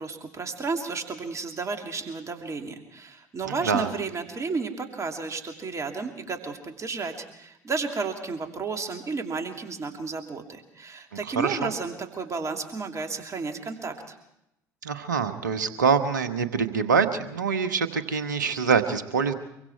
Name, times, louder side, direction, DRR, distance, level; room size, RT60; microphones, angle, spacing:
voice 1, 0.0-14.1, right 4 dB, 35° right, 4 dB, 2.8 m, -32 dB
voice 2, 3.4-3.9 11.1-11.7 14.8-19.3, right 6 dB, 80° right, 10 dB, 1.3 m, -25 dB
25.0 x 23.5 x 4.6 m, 0.83 s
figure-of-eight pair, 55°, 10 cm